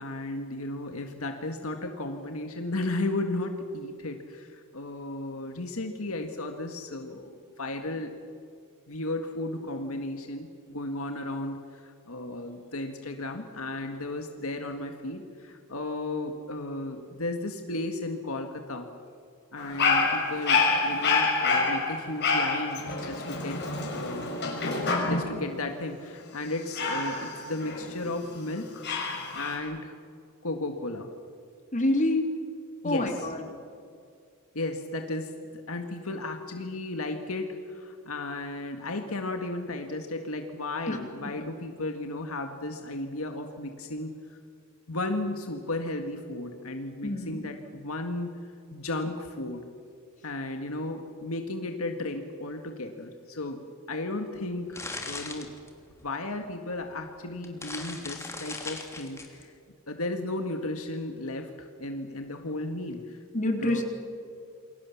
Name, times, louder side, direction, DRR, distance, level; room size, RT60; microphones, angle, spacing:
voice 1, 0.0-8.1 8.9-18.9 19.5-24.5 24.8-29.9 30.4-31.1 32.8-33.3 34.6-44.1 44.9-49.6 50.2-53.6 53.9-55.5 56.0-59.5 59.9-63.2 63.6-63.8, left 2 dB, 70° left, 5 dB, 1.9 m, -34 dB
Dog, 19.6-25.4 26.7-28.2 28.8-29.6, left 4 dB, 50° left, 5.7 m, -27 dB
voice 2, 31.7-32.3 32.8-33.4 40.9-41.0 47.0-47.4 63.3-63.8, left 1 dB, 35° left, 3 dB, 3.4 m, -27 dB
sound 1, 54.4-56.1 56.9-57.0 57.3-59.4, left 3 dB, 10° left, 3.0 m, -39 dB
29.0 x 22.5 x 7.3 m, 2.3 s
head